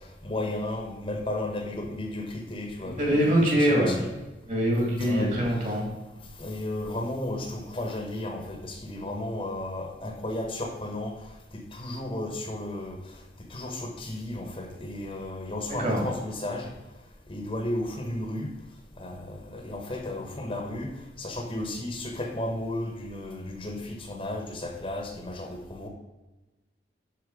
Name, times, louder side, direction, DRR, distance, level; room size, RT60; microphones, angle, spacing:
voice 1, 0.2-4.1 5.0-5.3 6.4-11.1 11.5-13.0 13.5-16.7 17.3-18.5 19.0-20.9 21.2-25.9, left 1 dB, 30° left, 3 dB, 1.1 m, -33 dB
voice 2, 3.0-4.0 4.5-5.8 15.8-16.0, equal, 45° right, -1 dB, 2.8 m, -23 dB
11.0 x 4.5 x 4.9 m, 1.1 s
head